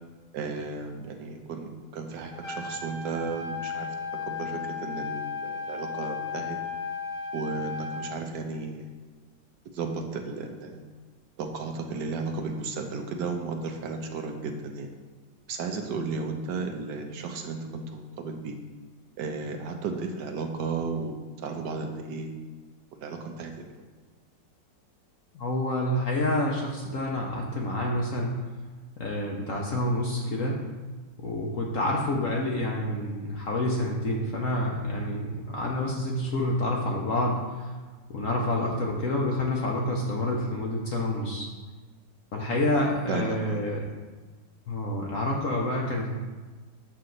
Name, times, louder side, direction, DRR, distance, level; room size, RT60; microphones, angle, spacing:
voice 1, 0.3-3.9 4.2-6.6 7.3-8.9 9.7-10.9 11.4-14.9 15.5-18.6 19.2-22.4 23.0-23.7 43.1-43.7, right 4 dB, 75° right, 4 dB, 1.3 m, -34 dB
Trumpet, 2.3-8.1, left 5 dB, 25° left, 0.9 m, -35 dB
voice 2, 25.3-28.4 29.0-30.6 31.2-37.7 38.1-41.5 42.3-43.8 44.7-46.1, left 1 dB, 55° left, -1 dB, 1.0 m, -28 dB
7.4 x 6.0 x 3.9 m, 1.3 s
omnidirectional pair, 1.9 m